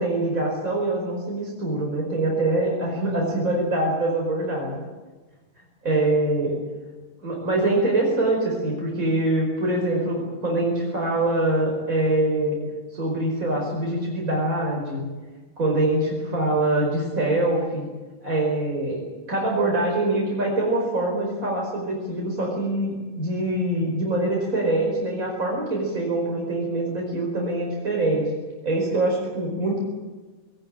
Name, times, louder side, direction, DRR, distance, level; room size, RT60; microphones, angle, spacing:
voice 1, 0.0-4.7 5.8-6.6 7.2-12.6 12.9-15.0 15.6-17.9 18.2-28.3 28.6-29.8, right 2 dB, 70° right, -1 dB, 5.4 m, -24 dB
20.5 x 18.5 x 9.0 m, 1.3 s
omnidirectional pair, 1.5 m